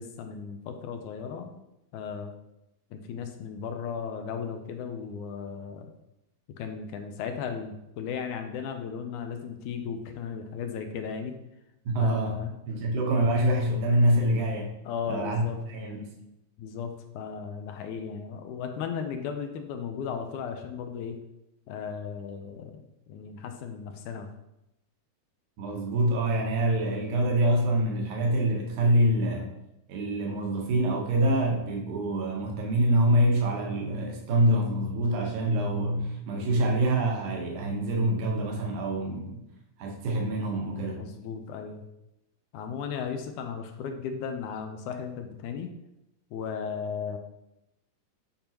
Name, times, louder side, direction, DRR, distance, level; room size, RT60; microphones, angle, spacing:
voice 1, 0.0-1.6 1.9-2.3 2.9-5.9 6.6-11.3 12.0-12.6 14.9-15.6 16.6-21.2 21.7-22.8 23.1-24.3 40.9-41.9 42.5-45.7 46.3-47.2, left 6 dB, 80° left, 6 dB, 2.0 m, -36 dB
voice 2, 11.9-12.4 12.7-14.7 15.1-15.4 15.7-16.1 25.6-29.5 29.9-39.4 39.8-41.0, right 1 dB, 70° right, 0 dB, 2.6 m, -25 dB
8.6 x 5.3 x 2.9 m, 0.87 s
omnidirectional pair, 3.7 m